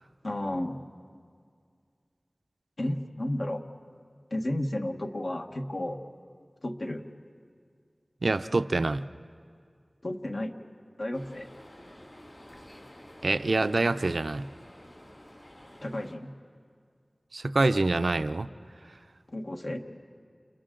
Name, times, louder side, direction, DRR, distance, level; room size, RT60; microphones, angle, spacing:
voice 1, 0.2-0.8 2.8-3.6 4.3-6.0 6.6-7.1 10.0-10.6 11.0-11.5 15.8-16.3 19.3-19.8, left 1 dB, 70° left, 3 dB, 1.4 m, -32 dB
voice 2, 8.2-9.0 13.2-14.5 17.3-18.5, right 2 dB, 80° right, 11 dB, 0.5 m, -26 dB
sound 1, 11.1-16.2, left 1 dB, 35° left, 2.4 m, -50 dB
29.5 x 29.5 x 3.8 m, 2.2 s
wide cardioid pair, 55°, 0 cm